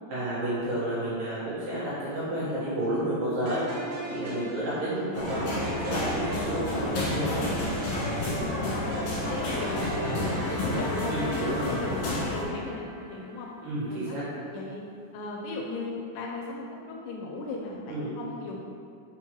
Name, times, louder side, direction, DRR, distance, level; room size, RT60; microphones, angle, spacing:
voice 1, 0.1-3.6 4.1-7.5 11.1-11.7 13.6-14.3 17.9-18.1, right 1 dB, 65° right, -10 dB, 2.4 m, -31 dB
sound 1, 3.5-13.7, right 1 dB, 80° right, 3.6 m, -38 dB
voice 2, 4.3-4.6 8.6-11.0 11.4-13.5 13.8-14.2 14.5-14.8 15.1-18.6, left 3 dB, 85° left, 0 dB, 2.5 m, -38 dB
sound 2, 5.1-12.4, left 2 dB, 60° left, 2.3 m, -30 dB
5.9 x 5.6 x 3.0 m, 2.4 s
omnidirectional pair, 5.2 m